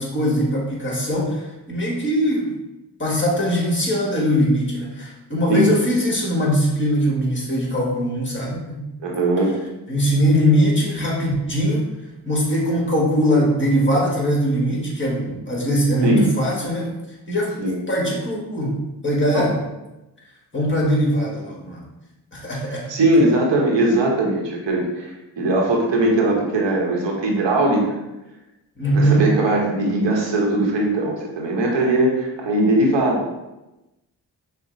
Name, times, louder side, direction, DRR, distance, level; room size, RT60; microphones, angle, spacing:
voice 1, 0.0-2.5 3.0-8.9 9.9-11.9 12.2-16.9 17.3-17.5 17.9-18.8 19.0-19.6 20.5-21.8 22.3-22.9 28.8-29.3, equal, 25° left, -3 dB, 1.5 m, -21 dB
voice 2, 9.0-9.5 16.0-16.2 17.6-17.8 19.3-19.5 22.6-27.9 28.9-33.3, right 1 dB, 90° right, -1 dB, 1.0 m, -20 dB
5.6 x 2.1 x 3.9 m, 0.99 s
cardioid pair, 60°, 42 cm